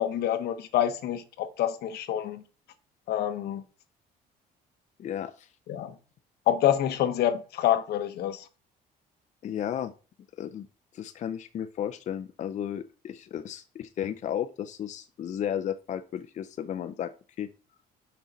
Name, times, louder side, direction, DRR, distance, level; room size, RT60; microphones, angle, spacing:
voice 1, 0.0-2.4 3.1-3.6 5.7-5.9 6.5-8.4, left 11 dB, 70° left, 0.9 m, -27 dB
voice 2, 5.0-5.5 9.4-9.9 10.4-10.7 10.9-17.1 17.4-17.5, left 10 dB, 45° left, 0.5 m, -34 dB
6.2 x 5.6 x 4.0 m
cardioid pair, 110°, 17 cm